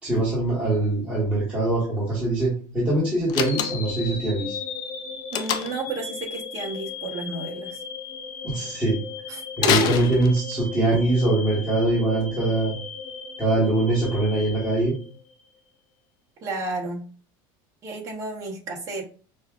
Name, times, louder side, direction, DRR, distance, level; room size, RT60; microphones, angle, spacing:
voice 1, 0.0-4.6 8.4-9.0 9.7-12.7 13.4-14.9, right 2 dB, 10° right, -10 dB, 1.3 m, -23 dB
Slam, 3.3-4.0 5.3-5.9 9.6-10.7, left 8 dB, 45° left, 0.4 m, -25 dB
sound 1, 3.4-15.5, left 5 dB, 85° left, 1.1 m, -36 dB
voice 2, 5.3-7.8 9.3-10.1 16.4-17.0 17.8-19.0, right 3 dB, 30° right, 0 dB, 0.9 m, -32 dB
5.3 x 2.3 x 2.4 m, 0.40 s
cardioid pair, 160°, 10 cm